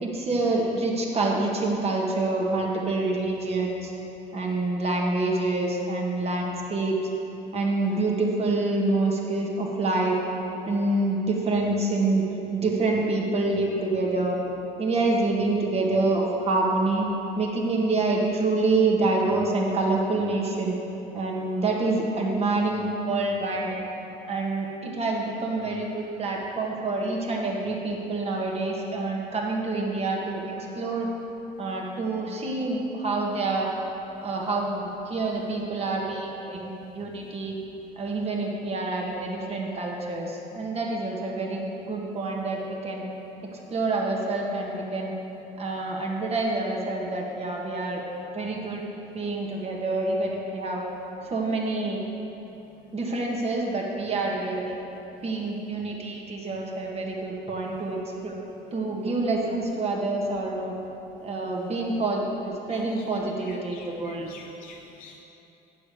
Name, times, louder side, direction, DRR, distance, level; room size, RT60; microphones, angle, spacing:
voice 1, 0.0-3.9 4.3-7.0 7.5-10.2 10.7-12.2 12.5-14.4 14.8-17.1 17.4-20.8 21.1-23.7 24.2-30.5 30.8-31.1 31.6-33.7 34.2-36.7 37.0-37.6 38.0-43.0 43.7-45.1 45.6-48.0 48.3-48.8 49.1-50.8 51.3-52.0 52.9-54.8 55.2-58.4 58.7-60.7 61.2-64.3, right 2 dB, 35° right, -1 dB, 1.5 m, -27 dB
voice 2, 62.7-63.0 63.4-65.2, left 5 dB, 60° left, 6 dB, 0.4 m, -48 dB
9.3 x 5.0 x 7.0 m, 3.0 s
cardioid pair, 110°, 17 cm